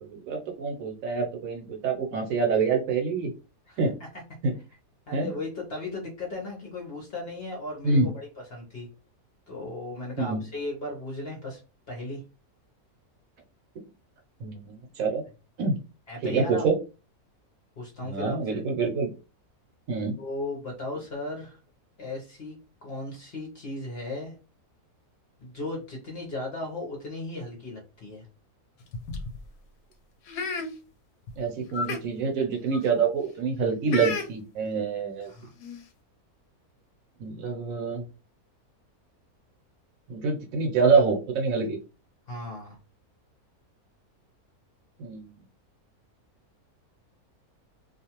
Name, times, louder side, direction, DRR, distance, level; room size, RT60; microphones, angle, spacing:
voice 1, 0.0-3.3 3.8-4.0 4.4-4.5 5.1-5.3 7.8-8.1 10.2-10.5 14.4-15.2 15.6-15.8 16.2-16.8 18.0-19.1 19.9-20.2 31.4-35.3 37.2-38.0 40.1-41.8 45.0-45.3, right 4 dB, 70° right, 2 dB, 1.0 m, -26 dB
voice 2, 3.7-4.1 5.1-8.1 8.5-8.9 9.5-11.6 11.9-12.2 16.1-16.6 17.8-18.6 20.2-21.6 22.0-24.3 25.4-28.3 35.3-35.5 42.3-42.8, left 2 dB, 55° left, -1 dB, 0.8 m, -36 dB
sound 1, 28.8-29.4 30.3-30.7 31.3-31.4 31.7-32.0 32.7-32.9 33.9-34.3 35.2-35.3 35.6-35.8, left 4 dB, 75° left, 1.0 m, -32 dB
2.5 x 2.2 x 2.8 m, 0.32 s
omnidirectional pair, 1.6 m